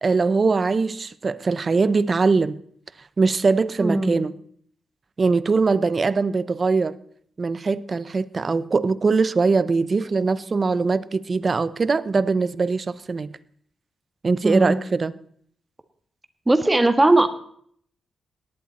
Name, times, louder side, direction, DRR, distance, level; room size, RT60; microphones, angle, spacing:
voice 1, 0.0-2.6 3.2-4.3 5.2-7.0 7.4-13.3 14.2-15.1, right 4 dB, 40° right, 0.7 m, -21 dB
voice 2, 3.8-4.2 14.4-14.8 16.5-17.3, right 2 dB, 15° right, 1.5 m, -19 dB
18.0 x 11.0 x 4.2 m
cardioid pair, 75°, 0 cm